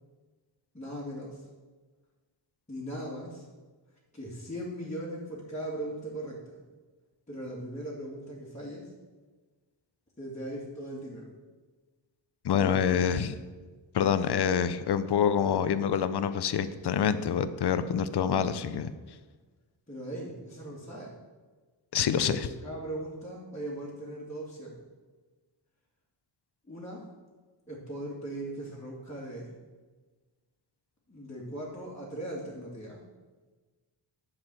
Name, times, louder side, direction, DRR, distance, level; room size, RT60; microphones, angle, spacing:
voice 1, 0.7-1.5 2.7-3.5 4.1-6.6 7.3-8.9 10.2-11.3 12.5-13.3 19.9-21.1 22.0-24.8 26.7-27.1 27.7-29.5 31.1-33.0, right 1 dB, 15° left, -8 dB, 2.2 m, -39 dB
voice 2, 12.4-13.3 13.9-18.9 21.9-22.5, left 8 dB, 55° left, 12 dB, 0.7 m, -26 dB
10.5 x 5.0 x 7.6 m, 1.3 s
wide cardioid pair, 130°, 47 cm